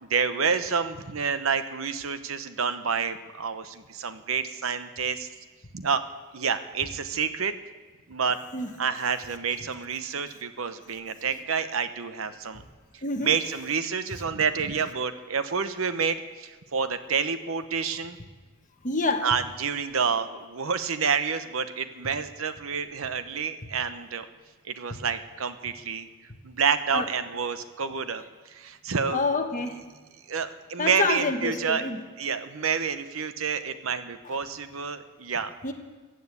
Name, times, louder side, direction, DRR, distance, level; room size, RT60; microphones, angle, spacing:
voice 1, 0.0-5.3 5.7-6.0 6.3-7.5 8.1-8.4 8.8-12.6 13.2-18.2 19.2-24.3 24.7-26.1 26.4-29.2 30.3-31.8 32.2-35.5, right 6 dB, 70° right, 11 dB, 0.8 m, -28 dB
voice 2, 13.0-13.4 18.8-19.3 26.9-27.1 29.1-29.8 30.8-32.0 35.6-35.7, left 3 dB, 35° left, 5 dB, 1.3 m, -27 dB
15.5 x 9.2 x 8.2 m, 1.3 s
head